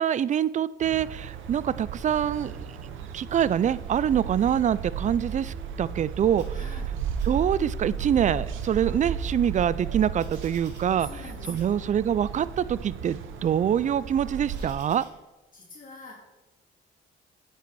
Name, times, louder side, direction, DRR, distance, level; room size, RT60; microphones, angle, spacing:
voice 1, 0.0-2.7 3.1-6.6 7.2-11.1 11.5-15.0, right 9 dB, 40° right, 18 dB, 0.4 m, -25 dB
sound 1, 0.8-14.7, right 6 dB, 85° right, 0.9 m, -35 dB
sound 2, 6.4-6.9 7.2-7.9 8.5-11.3 11.6-12.3 12.8-15.0, right 1 dB, 60° right, 3.3 m, -51 dB
voice 2, 6.5-6.9 11.0-11.8 15.0-15.1 15.5-16.2, left 3 dB, 45° left, -2 dB, 2.2 m, -44 dB
8.2 x 7.6 x 4.7 m, 1.1 s
cardioid pair, 90°, 20 cm